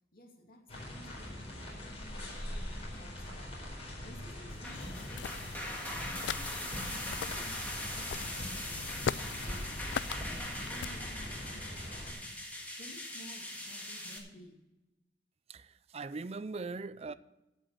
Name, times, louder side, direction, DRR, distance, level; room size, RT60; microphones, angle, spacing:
voice 1, 0.1-3.6 4.0-5.7 6.0-12.3 12.8-14.6, left 1 dB, 55° left, 2.5 m, -54 dB
sound 1, 0.7-12.1, left 1 dB, 35° left, 4.4 m, -43 dB
sound 2, 4.5-14.2, left 1 dB, 10° left, 2.0 m, -41 dB
sound 3, 4.7-10.9, left 8 dB, 80° left, 0.3 m, -41 dB
voice 2, 15.5-17.1, right 3 dB, 35° right, 0.4 m, -40 dB
16.0 x 5.4 x 6.9 m
head